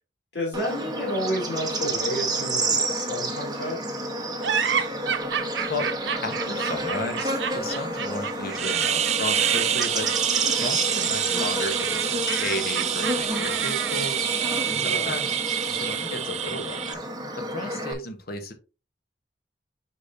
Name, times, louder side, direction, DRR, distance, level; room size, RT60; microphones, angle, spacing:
voice 1, 0.3-3.8 14.7-15.2, equal, 80° left, -2 dB, 2.9 m, -31 dB
Bird / Insect, 0.5-17.9, right 2 dB, 25° right, 1.2 m, -30 dB
sound 1, 4.4-14.3, right 7 dB, 80° right, 0.6 m, -31 dB
voice 2, 6.2-10.1 10.6-14.2 14.7-15.4 15.7-17.0 17.4-18.5, left 2 dB, 60° left, 5 dB, 1.2 m, -33 dB
sound 2, 8.6-16.9, right 10 dB, 40° right, 0.3 m, -27 dB
6.7 x 5.3 x 2.7 m, 0.32 s
head